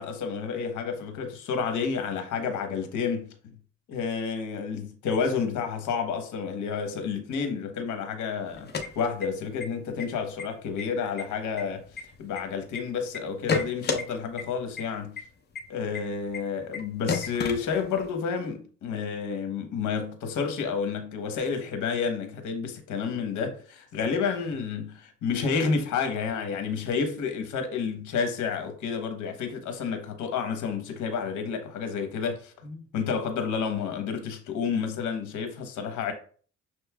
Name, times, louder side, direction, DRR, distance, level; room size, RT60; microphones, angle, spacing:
voice 1, 0.0-3.5 3.9-8.7 8.9-11.9 12.2-15.2 15.7-36.1, left 6 dB, 80° left, 1.0 m, -30 dB
sound 1, 8.5-9.6 10.0-10.1 10.4-10.8 11.2-12.8 13.1-14.0 14.4-14.5 14.8-14.9 15.2-15.3 15.6-15.7 15.9-16.0 16.3-16.4 16.7-16.8 17.1-18.1, left 5 dB, 35° left, 0.7 m, -30 dB
6.2 x 3.1 x 2.3 m
cardioid pair, 90°, 30 cm